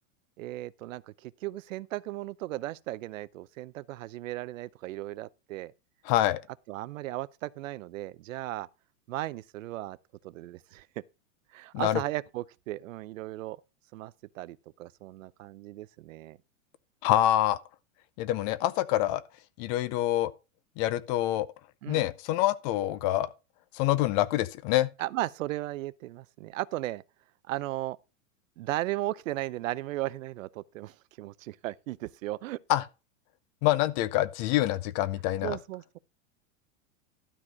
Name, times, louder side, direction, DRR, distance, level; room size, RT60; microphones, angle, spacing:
voice 1, 0.4-5.7 6.7-8.7 9.1-10.0 10.2-10.9 11.5-13.6 13.9-16.4 21.8-22.1 25.0-27.0 27.5-28.0 28.6-32.6 35.4-36.0, right 16 dB, 80° right, 0.7 m, -36 dB
voice 2, 6.1-6.4 11.7-12.0 17.0-17.6 18.2-19.2 19.6-20.3 20.8-21.5 21.9-23.3 23.7-24.9 32.7-32.8 33.6-35.6, left 14 dB, 35° left, 0.5 m, -26 dB
12.5 x 4.3 x 6.2 m
supercardioid pair, 150°, 39 cm